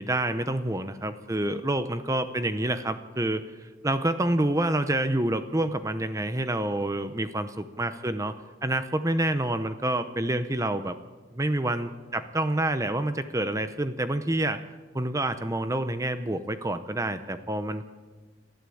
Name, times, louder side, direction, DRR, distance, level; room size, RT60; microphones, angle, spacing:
voice 1, 0.0-8.3 8.6-11.0 11.3-14.6 14.9-17.9, right 1 dB, 15° right, 10 dB, 0.7 m, -28 dB
29.5 x 13.0 x 8.6 m, 1.4 s
head